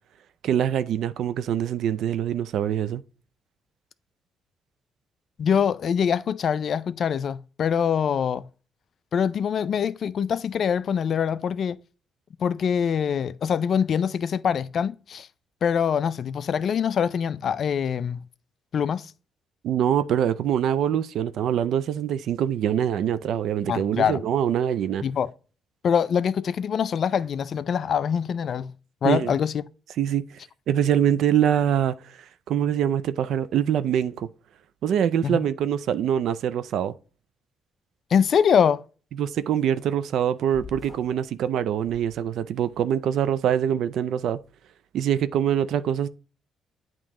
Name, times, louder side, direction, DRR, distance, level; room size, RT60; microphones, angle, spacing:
voice 1, 0.4-3.0 19.6-25.0 29.0-29.3 30.0-30.2 30.7-31.9 32.5-34.3 34.8-36.9 39.2-44.4 44.9-46.1, right 9 dB, 75° right, 0.4 m, -24 dB
voice 2, 5.4-8.5 9.1-11.8 12.4-15.3 15.6-18.2 18.7-19.1 23.7-24.2 25.0-25.3 25.8-28.7 29.0-29.5 35.2-35.4 38.1-38.8, left 7 dB, 60° left, 0.4 m, -24 dB
sound 1, 40.5-41.2 41.8-42.7, left 3 dB, 5° left, 1.1 m, -45 dB
8.6 x 3.0 x 3.6 m
cardioid pair, 90°, 0 cm